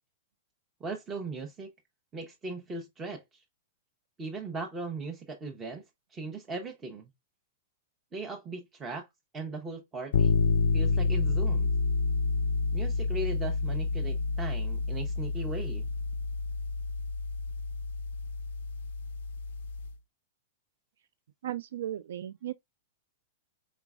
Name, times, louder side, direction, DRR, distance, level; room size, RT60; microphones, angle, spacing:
voice 1, 0.8-1.7 2.1-3.4 4.2-5.8 6.1-7.1 8.1-9.1 9.3-10.4 10.7-11.7 12.7-15.9, right 3 dB, 10° right, 0.6 m, -38 dB
sound 1, 10.1-19.9, left 4 dB, 65° left, 0.3 m, -29 dB
voice 2, 21.4-22.5, right 12 dB, 65° right, 0.3 m, -35 dB
5.0 x 4.0 x 2.3 m
supercardioid pair, 175°, 0 cm